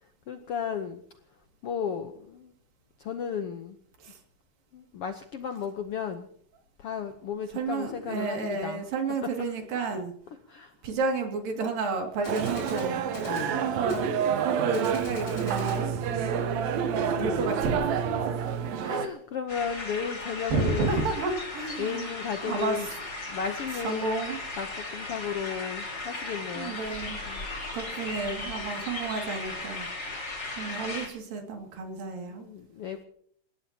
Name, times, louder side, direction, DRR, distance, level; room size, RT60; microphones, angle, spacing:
voice 1, 0.3-1.0 1.6-2.5 3.0-3.8 4.7-6.3 6.8-8.8 9.2-9.3 10.5-10.7 13.3-13.7 17.2-17.5 18.8-21.0 21.8-22.9 23.3-26.8 27.3-27.5 30.7-30.8 32.2-33.0, left 7 dB, 75° left, 7 dB, 1.3 m, -34 dB
voice 2, 7.5-10.1 10.8-13.0 13.6-15.9 16.9-17.9 20.5-22.1 22.4-22.9 23.8-24.4 26.5-27.2 27.7-29.9 30.6-32.4, right 4 dB, 90° right, 3 dB, 4.2 m, -31 dB
Gunshot gunfire, 11.6-11.7 12.2-13.5 13.9-14.1 14.7-15.9, left 3 dB, 55° left, 4.2 m, -44 dB
sound 1, 12.2-19.1, right 7 dB, 65° right, 2.1 m, -28 dB
sound 2, 19.5-31.1, left 2 dB, 30° left, 3.5 m, -37 dB
28.5 x 16.5 x 2.9 m, 0.63 s
omnidirectional pair, 3.9 m